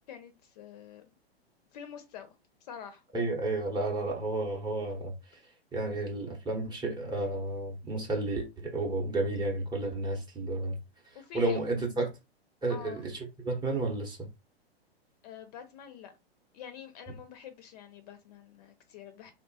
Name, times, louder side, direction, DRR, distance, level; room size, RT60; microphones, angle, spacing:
voice 1, 0.1-1.0 1.7-2.3 2.6-3.0 11.1-11.7 12.7-13.0 15.2-16.1 16.5-19.3, left 8 dB, 40° left, 0.5 m, -46 dB
voice 2, 3.1-5.1 5.7-10.8 11.3-12.1 12.6-14.3, right 2 dB, 15° right, 0.7 m, -31 dB
3.0 x 2.1 x 2.7 m
figure-of-eight pair, 105°, 32 cm